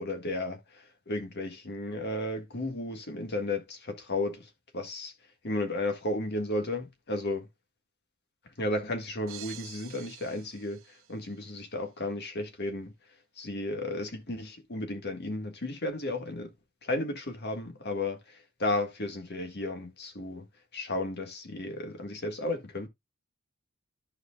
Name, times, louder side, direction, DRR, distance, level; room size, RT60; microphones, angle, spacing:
voice 1, 0.0-5.1 5.4-7.5 8.4-12.9 13.4-16.5 16.8-20.5 20.7-22.9, left 2 dB, 50° left, 1.7 m, -34 dB
sound 1, 9.3-11.5, right 10 dB, 70° right, 1.0 m, -48 dB
14.0 x 4.8 x 2.3 m
head